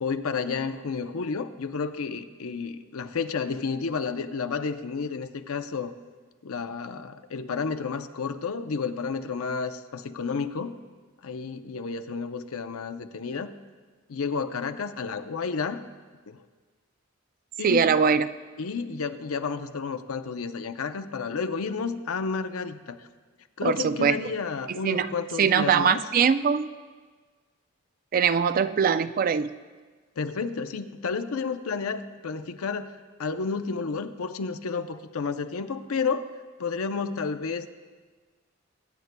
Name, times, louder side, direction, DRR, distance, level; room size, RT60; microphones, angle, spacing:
voice 1, 0.0-5.9 6.4-10.8 11.2-13.5 14.1-15.8 16.3-16.4 17.6-17.9 18.6-23.0 23.6-26.0 30.2-32.9 33.2-36.3 36.6-37.7, left 5 dB, 85° left, 9 dB, 0.6 m, -31 dB
voice 2, 17.6-18.3 23.6-24.2 24.7-25.1 25.4-26.7 28.1-29.5, right 6 dB, 40° right, 13 dB, 0.3 m, -22 dB
23.0 x 9.4 x 2.2 m, 1.4 s
head